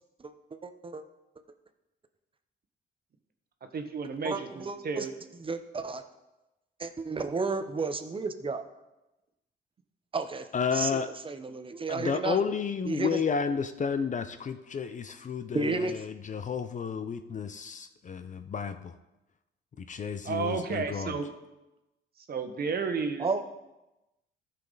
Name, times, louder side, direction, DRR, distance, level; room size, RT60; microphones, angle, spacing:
voice 1, 0.2-1.0 4.2-5.1 5.4-6.0 6.8-8.6 10.1-10.5 10.7-12.4 12.8-13.2 15.5-16.0 23.2-23.4, right 4 dB, 25° right, 9 dB, 0.8 m, -32 dB
voice 2, 3.7-5.1 20.2-21.3 22.3-23.3, right 5 dB, 50° right, 6 dB, 1.2 m, -32 dB
voice 3, 10.5-11.1 11.9-18.9 19.9-21.1, left 6 dB, 40° left, 10 dB, 0.6 m, -31 dB
14.0 x 5.8 x 4.0 m, 1.0 s
cardioid pair, 90°, 20 cm